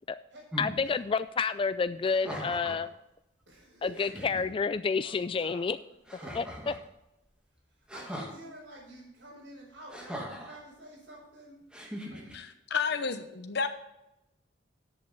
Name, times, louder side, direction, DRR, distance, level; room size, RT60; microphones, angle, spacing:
sound 1, 0.5-0.8 2.0-2.9 3.5-3.6 3.9-4.5 6.1-6.9 7.9-8.3 9.9-10.6 11.7-12.3, equal, 5° right, 2.2 m, -40 dB
voice 1, 0.6-2.9 3.8-5.8 6.3-6.7, left 5 dB, 30° left, 12 dB, 0.3 m, -29 dB
voice 2, 3.5-4.1 4.7-6.3 7.7-11.6 12.1-12.4 12.9-13.2, right 1 dB, 75° right, -8 dB, 5.1 m, -50 dB
voice 3, 12.3-13.7, left 5 dB, 65° left, 8 dB, 0.9 m, -31 dB
13.5 x 8.4 x 4.1 m, 0.88 s
head